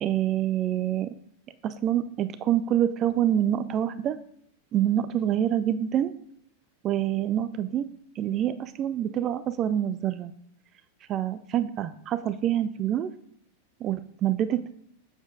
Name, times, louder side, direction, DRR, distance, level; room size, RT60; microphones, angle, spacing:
voice 1, 0.0-1.1 1.6-4.2 4.7-6.1 6.8-7.9 8.2-10.3 11.1-13.1 13.8-14.7, right 11 dB, 30° right, 13 dB, 0.3 m, -26 dB
7.0 x 7.0 x 2.4 m, 0.70 s
figure-of-eight pair, 90°, 0 cm